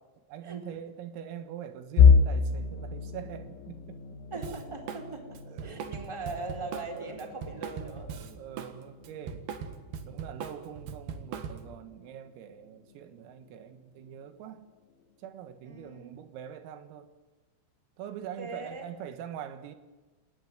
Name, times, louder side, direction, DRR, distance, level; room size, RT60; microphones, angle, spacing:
voice 1, 0.3-4.0 4.3-4.5 5.5-5.9 6.9-7.2 8.2-9.5 10.0-14.7 15.2-17.1 18.0-19.8, right 9 dB, 90° right, 9 dB, 4.3 m, -43 dB
sound 1, 2.0-13.8 14.2-14.5 14.9-15.0 15.9-16.4, left 6 dB, 80° left, 4.1 m, -29 dB
voice 2, 4.3-8.2 15.6-16.2 18.4-18.9, right 3 dB, 5° right, 3 dB, 3.3 m, -40 dB
Drum kit, 4.4-5.1 5.3-8.7 9.0-11.8, right 7 dB, 60° right, 2.9 m, -39 dB
29.0 x 17.0 x 9.5 m, 1.2 s
omnidirectional pair, 5.9 m